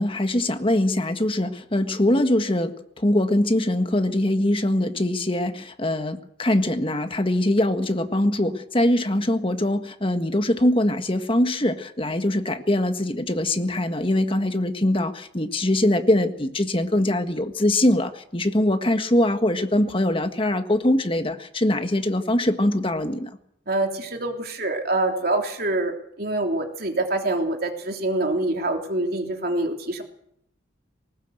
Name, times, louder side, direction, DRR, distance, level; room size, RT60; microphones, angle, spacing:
voice 1, 0.0-23.3, left 1 dB, 30° left, 7 dB, 1.6 m, -22 dB
voice 2, 23.7-30.0, right 2 dB, 50° right, 3 dB, 3.2 m, -25 dB
20.0 x 19.0 x 7.9 m, 0.74 s
head